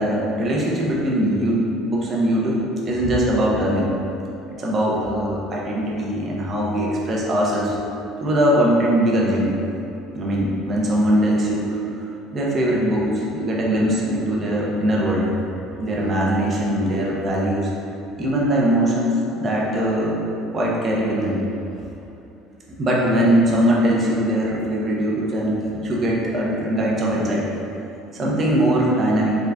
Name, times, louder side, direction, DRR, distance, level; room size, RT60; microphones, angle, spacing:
voice 1, 0.0-2.6 2.9-3.9 4.6-7.8 8.2-9.5 10.1-11.8 12.3-15.2 15.8-17.7 18.2-20.2 20.5-21.4 22.8-27.5 28.1-29.4, right 1 dB, 30° right, -4 dB, 0.6 m, -21 dB
3.6 x 2.4 x 3.3 m, 2.9 s
cardioid pair, 150°, 0 cm